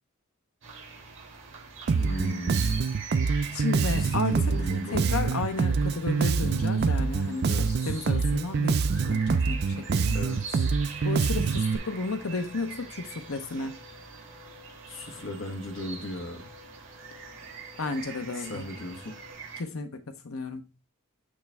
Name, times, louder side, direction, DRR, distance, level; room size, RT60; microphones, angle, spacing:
sound 1, 0.6-19.6, right 5 dB, 65° right, 2.5 m, -44 dB
voice 1, 1.9-2.8 3.9-5.4 7.5-7.7 10.1-10.7 14.9-16.5 18.4-19.2, left 1 dB, 65° left, 1.4 m, -37 dB
Bass guitar, 1.9-11.8, right 5 dB, 50° right, 0.3 m, -25 dB
voice 2, 3.5-4.6 4.9-10.2 11.0-13.8 17.8-18.7 19.6-20.6, left 3 dB, 85° left, 0.9 m, -33 dB
sound 2, 5.6-19.3, left 7 dB, 30° left, 1.5 m, -55 dB
8.5 x 3.3 x 3.5 m
head